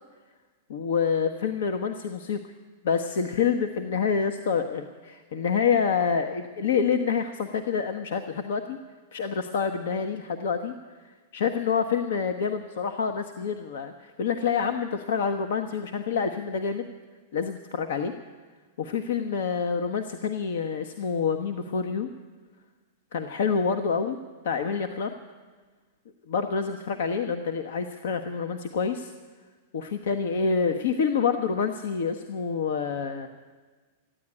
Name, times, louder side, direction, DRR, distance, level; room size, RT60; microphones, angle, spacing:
voice 1, 0.7-2.4 2.8-8.8 9.1-10.7 11.0-16.9 17.3-18.1 18.8-22.1 23.1-24.2 24.4-25.1 26.3-29.1 29.7-33.3, left 6 dB, 75° left, 8 dB, 0.9 m, -27 dB
14.0 x 10.0 x 9.7 m, 1.4 s
hypercardioid pair, 135°, 0 cm